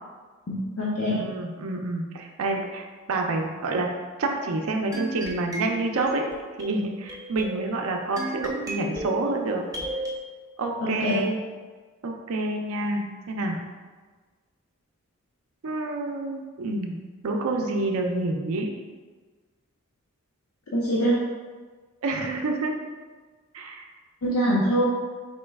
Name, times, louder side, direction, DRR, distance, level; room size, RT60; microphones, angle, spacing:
voice 1, 0.5-1.2 10.8-11.3 20.7-21.2 24.2-24.9, equal, 75° left, -5 dB, 0.6 m, -24 dB
voice 2, 1.1-3.9 4.2-6.2 6.6-9.6 10.6-11.4 12.0-13.6 15.6-18.7 22.0-22.8 23.5-23.9, right 2 dB, 75° right, 2 dB, 0.4 m, -28 dB
sound 1, 4.9-10.2, right 2 dB, 15° right, 0.5 m, -35 dB
4.3 x 3.1 x 3.4 m, 1.4 s
head